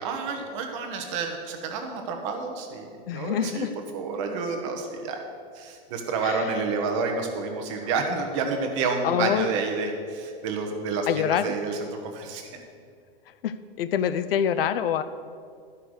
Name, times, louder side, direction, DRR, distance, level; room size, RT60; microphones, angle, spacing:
voice 1, 0.0-3.7 3.9-5.2 5.5-12.5, right 4 dB, 30° right, 3 dB, 1.2 m, -29 dB
voice 2, 3.1-3.7 6.2-6.7 9.0-9.5 11.1-11.5 13.4-15.0, left 9 dB, 75° left, 11 dB, 0.6 m, -26 dB
12.0 x 5.7 x 6.4 m, 2.2 s
supercardioid pair, 175°, 29 cm